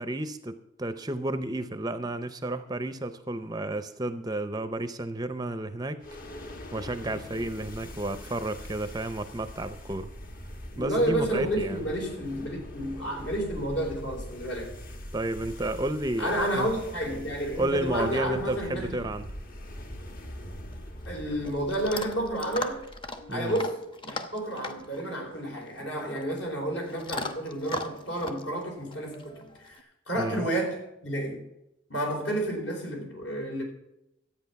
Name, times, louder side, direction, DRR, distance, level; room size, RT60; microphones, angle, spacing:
voice 1, 0.0-6.0 6.7-10.1 10.8-11.9 15.1-16.7 17.5-19.3 23.3-23.6 30.2-30.5, right 1 dB, 20° right, 0.5 m, -32 dB
sound 1, 6.0-23.4, equal, 45° left, 1.2 m, -43 dB
voice 2, 10.7-14.8 16.2-19.0 21.1-22.8 23.3-23.8 24.0-29.3 29.6-29.8 30.1-31.5 31.9-33.6, right 1 dB, 65° left, 4.3 m, -30 dB
Chewing mastication / Dog, 20.7-29.8, left 2 dB, 25° left, 0.8 m, -40 dB
13.0 x 8.7 x 5.8 m
head